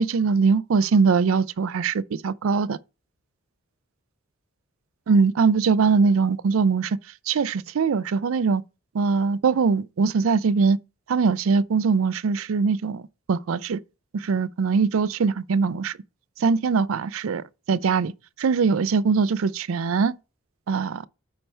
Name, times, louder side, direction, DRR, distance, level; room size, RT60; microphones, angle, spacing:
voice 1, 0.0-2.8 5.1-7.0 7.3-8.6 8.9-10.8 11.1-13.0 13.3-13.8 14.1-16.0 16.4-18.1 18.4-20.1 20.7-21.1, right 5 dB, 75° right, 0.4 m, -22 dB
8.7 x 3.3 x 5.4 m
head